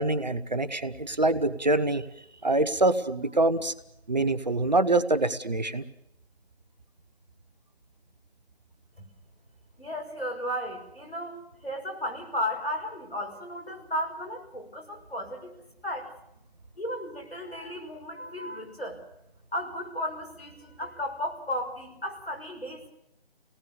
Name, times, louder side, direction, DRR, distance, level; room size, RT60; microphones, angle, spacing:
voice 1, 0.0-2.0 2.4-3.7 4.1-5.8, right 2 dB, 45° right, 13 dB, 0.9 m, -25 dB
voice 2, 9.8-15.5 15.8-16.1 16.8-19.0 19.5-22.9, equal, 70° left, 2 dB, 5.8 m, -34 dB
26.5 x 18.5 x 7.0 m, 0.78 s
figure-of-eight pair, 160°, 32 cm